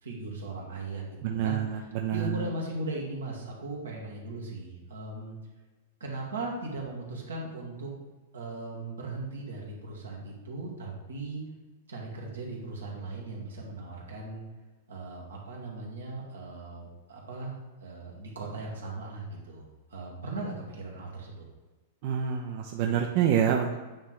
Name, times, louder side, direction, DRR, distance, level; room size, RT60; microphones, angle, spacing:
voice 1, 0.0-1.6 2.1-5.4 6.0-7.9 8.3-11.4 11.9-14.4 14.9-19.6 19.9-21.4, right 2 dB, 85° right, -2 dB, 1.7 m, -38 dB
voice 2, 1.2-2.4 22.0-23.8, right 9 dB, 55° right, 2 dB, 0.6 m, -27 dB
8.7 x 3.2 x 3.8 m, 1.2 s
hypercardioid pair, 110°, 0 cm